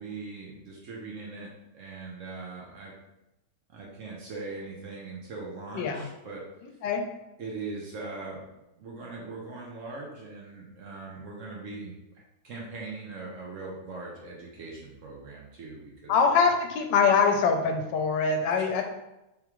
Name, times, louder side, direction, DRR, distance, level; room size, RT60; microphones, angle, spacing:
voice 1, 0.0-2.9 3.7-6.4 7.4-8.4 8.8-16.1, right 3 dB, 60° right, -3 dB, 0.9 m, -40 dB
voice 2, 16.1-18.8, left 5 dB, 85° left, 4 dB, 1.3 m, -23 dB
3.5 x 3.5 x 3.0 m, 0.93 s
omnidirectional pair, 1.9 m